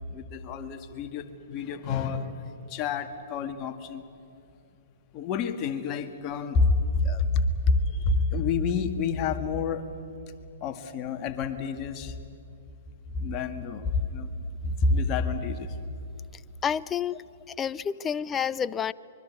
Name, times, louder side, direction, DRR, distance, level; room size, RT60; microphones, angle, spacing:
voice 1, 0.1-2.4 2.7-4.0 5.1-9.8 10.6-12.2 13.1-14.3 14.6-15.7, left 4 dB, 35° left, 7 dB, 1.8 m, -28 dB
voice 2, 16.6-17.1 17.6-18.9, left 8 dB, 20° left, 17 dB, 0.5 m, -29 dB
24.5 x 23.0 x 8.6 m, 2.7 s
hypercardioid pair, 125°, 0 cm